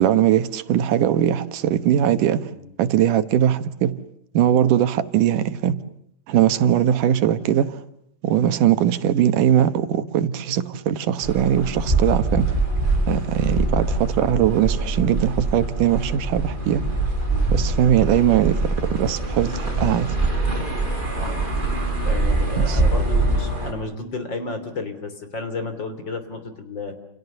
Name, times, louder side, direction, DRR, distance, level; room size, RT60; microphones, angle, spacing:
voice 1, 0.0-2.5 2.8-3.9 4.3-5.8 6.3-7.8 8.2-12.6 13.1-16.8 17.5-20.1 22.6-22.8, right 10 dB, 90° right, 2.8 m, -20 dB
sound 1, 11.2-23.7, right 2 dB, 15° right, 6.4 m, -23 dB
voice 2, 22.0-26.9, left 3 dB, 35° left, 3.7 m, -32 dB
29.5 x 29.0 x 6.9 m
omnidirectional pair, 3.6 m